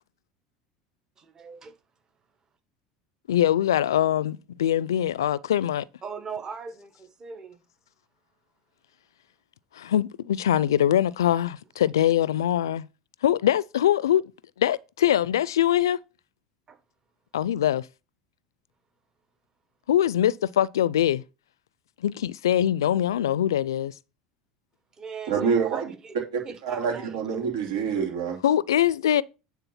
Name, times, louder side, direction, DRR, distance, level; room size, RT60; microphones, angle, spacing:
voice 1, 1.2-1.7 6.0-7.6 16.7-16.8 25.0-26.2 26.4-27.2, right 5 dB, 30° right, 1.4 m, -39 dB
voice 2, 3.3-5.9 9.7-12.9 13.2-14.3 14.6-16.0 17.3-17.9 19.9-21.2 22.0-23.9 28.4-29.2, left 11 dB, 85° left, 0.4 m, -23 dB
voice 3, 25.3-25.9 26.3-28.4, right 6 dB, 80° right, 2.9 m, -27 dB
9.5 x 3.8 x 5.7 m
hypercardioid pair, 80°, 2 cm